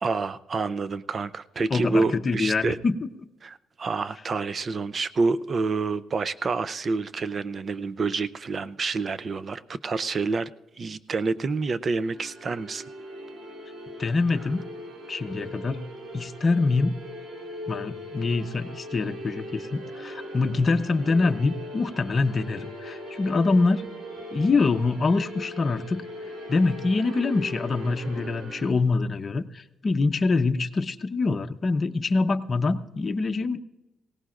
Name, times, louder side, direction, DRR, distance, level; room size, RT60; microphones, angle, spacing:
voice 1, 0.0-2.8 3.4-10.5 10.8-12.8, right 4 dB, 40° right, 16 dB, 0.5 m, -28 dB
voice 2, 1.7-3.0 14.0-14.6 15.1-15.9 16.1-17.0 17.7-23.9 24.3-26.0 26.5-33.6, left 3 dB, 35° left, 8 dB, 0.8 m, -25 dB
sound 1, 12.0-28.7, equal, 80° right, 3.8 m, -40 dB
19.0 x 17.5 x 2.5 m, 0.99 s
cardioid pair, 90°, 0 cm